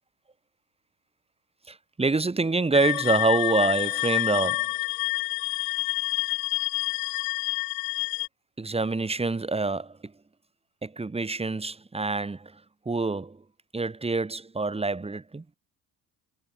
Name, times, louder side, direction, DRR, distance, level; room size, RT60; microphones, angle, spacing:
voice 1, 1.7-4.7 8.6-10.1 10.8-12.5 12.9-13.4 13.7-15.4, right 3 dB, 15° right, 1.7 m, -26 dB
sound 1, 2.7-8.3, left 25 dB, 65° left, 0.5 m, -28 dB
hypercardioid pair, 70°, 38 cm